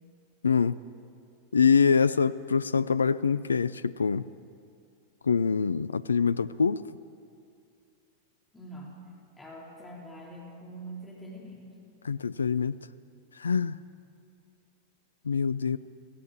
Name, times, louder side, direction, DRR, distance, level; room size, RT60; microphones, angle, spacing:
voice 1, 0.4-0.8 1.5-4.3 5.2-6.8 12.0-12.8 13.4-13.8 15.2-15.8, left 6 dB, 75° left, 16 dB, 0.4 m, -25 dB
voice 2, 8.5-9.0 9.4-11.6, right 1 dB, 10° left, -3 dB, 4.3 m, -44 dB
18.0 x 17.5 x 8.3 m, 2.3 s
figure-of-eight pair, 90°, 0 cm